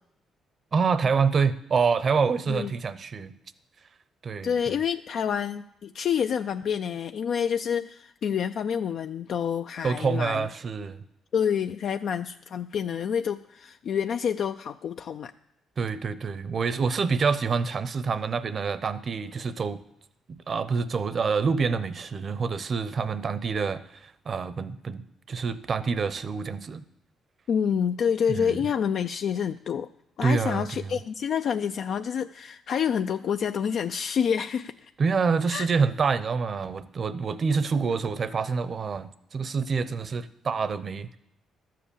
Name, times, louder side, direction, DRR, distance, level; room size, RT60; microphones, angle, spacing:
voice 1, 0.7-3.3 4.2-4.5 9.8-11.0 15.8-19.8 20.3-26.8 28.3-28.6 30.2-31.0 35.0-41.2, right 5 dB, 45° right, 14 dB, 0.7 m, -27 dB
voice 2, 4.4-10.5 11.3-15.3 27.5-29.9 30.2-34.7 35.5-35.7, left 7 dB, 65° left, 8 dB, 0.4 m, -28 dB
12.5 x 7.6 x 6.9 m, 0.81 s
cardioid pair, 90°, 0 cm